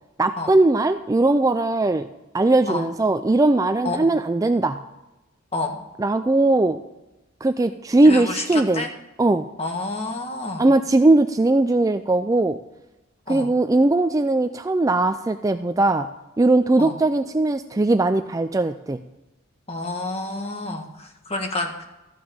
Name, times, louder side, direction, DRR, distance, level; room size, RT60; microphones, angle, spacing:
voice 1, 0.2-2.1 2.3-4.8 6.0-6.8 7.4-8.8 9.2-9.5 10.6-12.6 13.3-16.1 16.4-19.0, right 2 dB, 15° right, 9 dB, 0.4 m, -19 dB
voice 2, 3.8-4.2 5.5-5.8 8.0-8.9 9.6-10.7 13.3-13.5 16.8-16.9 19.7-21.8, left 2 dB, 30° left, 2 dB, 1.7 m, -29 dB
14.0 x 6.2 x 8.7 m, 1.0 s
head